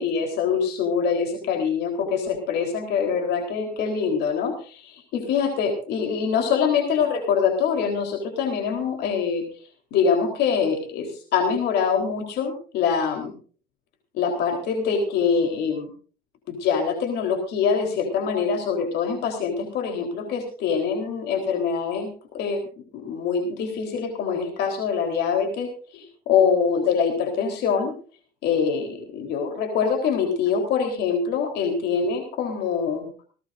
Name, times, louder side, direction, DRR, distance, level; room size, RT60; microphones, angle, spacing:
voice 1, 0.0-9.4 9.9-13.3 14.1-15.9 16.5-22.1 22.3-22.6 22.9-25.7 25.9-27.9 28.4-33.1, left 6 dB, 80° left, 4 dB, 3.8 m, -24 dB
19.0 x 17.5 x 2.6 m, 0.40 s
cardioid pair, 110°, 17 cm